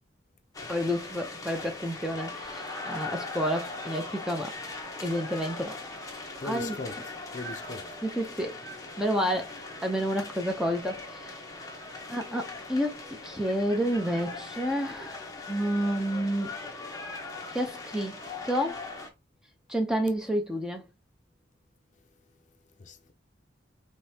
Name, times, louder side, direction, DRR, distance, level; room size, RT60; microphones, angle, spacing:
sound 1, 0.5-19.1, left 3 dB, 20° left, 1.0 m, -40 dB
voice 1, 0.7-4.5 5.0-5.8 6.4-6.8 8.0-8.6 9.0-9.5 9.8-11.3 12.1-16.5 17.5-18.2 18.5-18.8 19.7-20.8, equal, 5° right, 0.7 m, -30 dB
voice 2, 6.4-7.0 7.3-7.9 22.8-23.1, left 3 dB, 40° left, 0.6 m, -39 dB
5.3 x 3.1 x 2.8 m
head